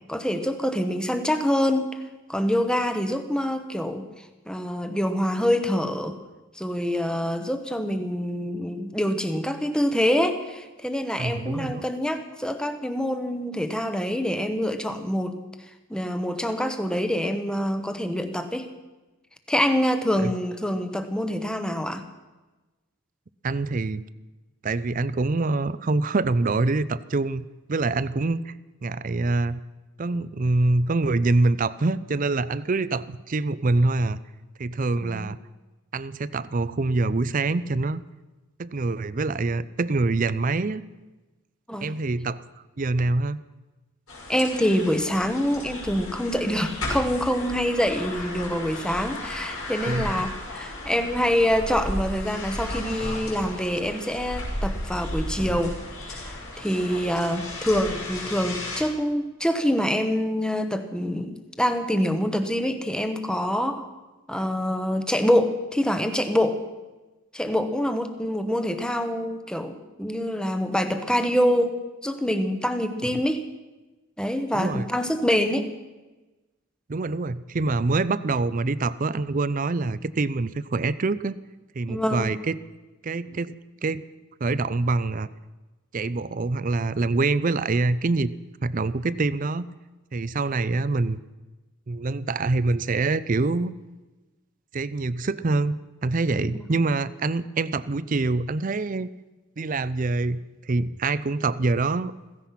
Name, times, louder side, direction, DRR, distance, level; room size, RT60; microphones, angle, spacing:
voice 1, 0.1-1.9 2.3-6.2 6.5-15.4 15.9-18.7 19.5-22.0 35.0-35.3 41.7-41.9 44.3-55.8 56.1-63.9 64.3-66.6 67.3-73.4 74.2-75.7 81.9-82.4 96.4-96.6, equal, 5° left, 8 dB, 1.0 m, -25 dB
voice 2, 11.2-11.8 20.2-20.3 23.4-24.0 24.6-28.5 28.8-29.6 30.0-34.2 34.6-35.4 35.9-38.0 38.6-40.8 41.8-42.4 42.8-43.4 49.9-50.3 73.0-73.2 74.5-74.9 76.9-81.4 81.7-82.6 83.0-83.5 83.8-84.0 84.4-85.3 85.9-88.3 88.6-89.7 90.1-91.2 91.9-93.7 94.7-99.1 99.6-102.1, right 3 dB, 40° right, 17 dB, 0.5 m, -25 dB
sound 1, 44.1-58.8, left 1 dB, 85° left, 5.9 m, -34 dB
16.0 x 15.5 x 5.8 m, 1.2 s
head